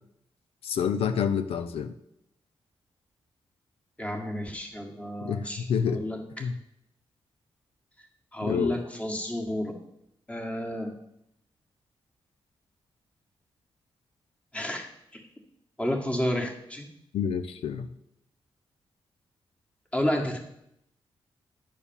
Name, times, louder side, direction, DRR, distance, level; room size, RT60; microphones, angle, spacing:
voice 1, 0.6-1.9 5.2-6.0 6.4-6.5 8.4-8.8 17.1-17.9, left 7 dB, 85° left, 9 dB, 0.6 m, -28 dB
voice 2, 4.0-6.5 8.3-9.7 10.3-10.9 14.5-15.2 15.8-16.9 19.9-20.4, left 1 dB, 15° left, 1 dB, 1.7 m, -31 dB
10.5 x 4.5 x 7.1 m, 0.77 s
wide cardioid pair, 120°, 10 cm